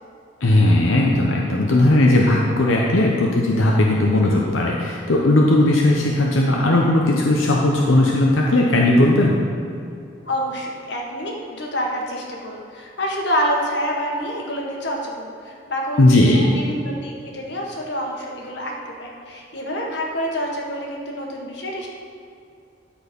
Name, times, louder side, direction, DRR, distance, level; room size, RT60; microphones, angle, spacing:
voice 1, 0.4-9.4 16.0-16.5, left 1 dB, 80° left, -1 dB, 0.8 m, -17 dB
voice 2, 10.2-18.7 19.0-21.9, equal, 60° left, -1 dB, 1.5 m, -27 dB
13.0 x 4.5 x 5.2 m, 2.5 s
head